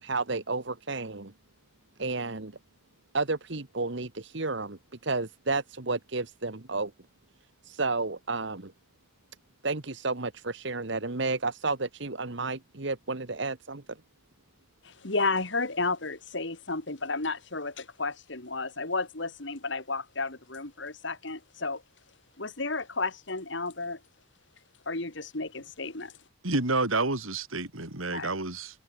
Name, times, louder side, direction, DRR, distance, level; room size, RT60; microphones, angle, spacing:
voice 1, 0.0-1.3 2.0-2.6 3.1-6.9 7.6-8.7 9.6-14.0, right 3 dB, 55° right, 1.4 m, -32 dB
voice 2, 14.8-21.8 22.4-24.0 24.9-26.1 28.1-28.3, left 3 dB, 60° left, 2.4 m, -32 dB
voice 3, 26.4-28.8, right 2 dB, 80° right, 4.4 m, -29 dB
head